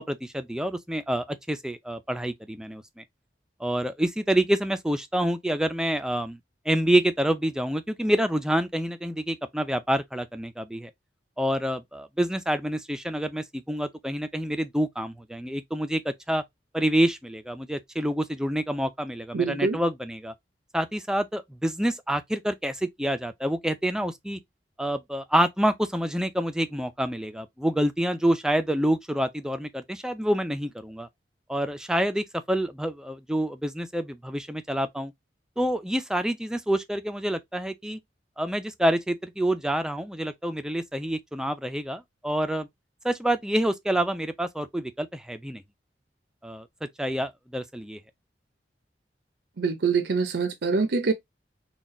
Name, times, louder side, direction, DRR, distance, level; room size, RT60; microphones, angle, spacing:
voice 1, 0.0-3.0 3.6-6.4 6.7-10.9 11.4-16.4 16.7-20.3 20.7-24.4 24.8-31.1 31.5-35.1 35.6-38.0 38.4-42.7 43.0-45.6 46.4-46.7 47.0-48.0, right 1 dB, 5° right, 0.4 m, -27 dB
voice 2, 19.3-19.8 49.6-51.1, right 4 dB, 65° right, 0.6 m, -24 dB
4.0 x 2.3 x 3.6 m
head